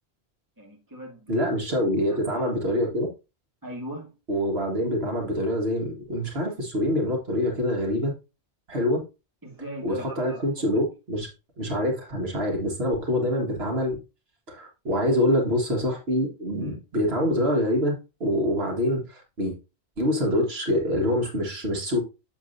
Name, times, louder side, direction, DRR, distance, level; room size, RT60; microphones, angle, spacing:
voice 1, 0.6-1.4 2.1-2.5 3.6-4.1 9.4-10.8 14.9-15.1 16.6-16.7, right 1 dB, 20° right, 2.2 m, -39 dB
voice 2, 1.3-3.1 4.3-8.1 8.7-9.0 9.8-11.3 11.6-14.0 14.5-18.0 18.2-19.6 20.0-22.0, left 1 dB, 75° right, 1.9 m, -25 dB
7.4 x 7.1 x 2.7 m
omnidirectional pair, 1.1 m